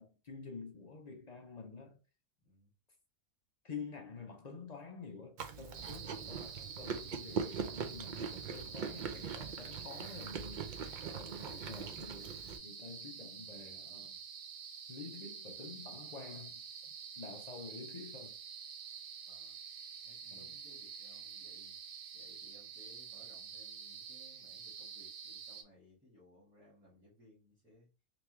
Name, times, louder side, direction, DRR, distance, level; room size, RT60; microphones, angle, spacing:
voice 1, 0.0-2.0 3.6-10.8 11.1-14.2 14.9-16.6 17.2-18.3 20.3-20.6, left 5 dB, 55° left, 0.4 m, -49 dB
Chewing mastication, 5.4-12.6, right 6 dB, 85° right, 0.4 m, -42 dB
sound 1, 5.7-25.6, right 7 dB, 60° right, 0.7 m, -48 dB
voice 2, 19.2-19.6 20.0-21.8 22.1-27.9, left 1 dB, 5° right, 1.4 m, -63 dB
3.4 x 3.0 x 3.0 m
omnidirectional pair, 1.4 m